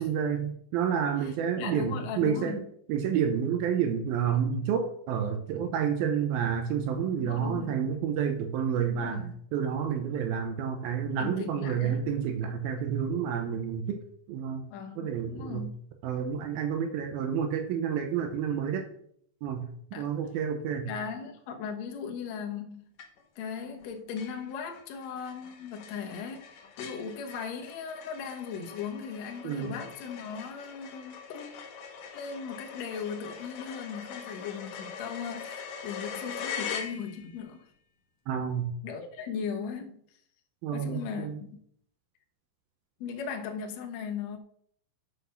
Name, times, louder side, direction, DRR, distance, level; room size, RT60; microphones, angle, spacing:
voice 1, 0.0-2.6 2.9-14.0 14.3-14.7 15.0-15.7 16.0-18.8 19.4-20.9 29.4-29.8 38.3-38.7 40.6-41.4, right 8 dB, 75° right, 2.4 m, -29 dB
voice 2, 1.2-2.6 7.1-7.8 8.9-9.4 11.2-12.1 14.7-15.7 19.9-20.1 20.9-22.9 23.4-31.7 32.1-37.7 38.8-40.0 40.7-41.5 43.0-44.4, left 6 dB, 65° left, 1.7 m, -38 dB
sound 1, 23.0-23.4 23.8-23.9 24.2-37.4, left 7 dB, 90° left, 1.5 m, -42 dB
7.7 x 6.0 x 5.7 m
omnidirectional pair, 4.8 m